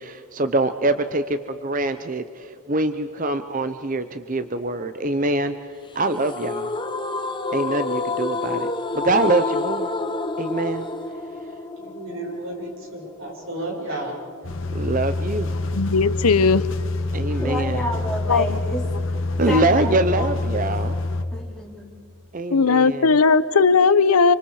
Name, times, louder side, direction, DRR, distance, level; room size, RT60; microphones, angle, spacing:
voice 1, 0.0-5.5 5.9-6.7 7.5-9.9 10.4-10.9 14.7-15.5 17.1-17.8 19.4-20.9 22.3-23.2, right 2 dB, 35° right, 10 dB, 0.7 m, -24 dB
sound 1, 6.2-13.3, left 3 dB, 20° left, 0.9 m, -28 dB
voice 2, 11.8-14.2, right 1 dB, 65° right, -1 dB, 6.7 m, -32 dB
sound 2, 14.4-21.2, left 2 dB, 60° left, 1.4 m, -26 dB
voice 3, 15.7-16.6 18.3-18.6 22.5-24.3, left 4 dB, 85° left, 16 dB, 0.8 m, -17 dB
voice 4, 17.3-18.9 19.4-20.6 21.3-21.9, equal, ahead, -4 dB, 3.6 m, -30 dB
27.0 x 25.5 x 4.9 m, 2.4 s
head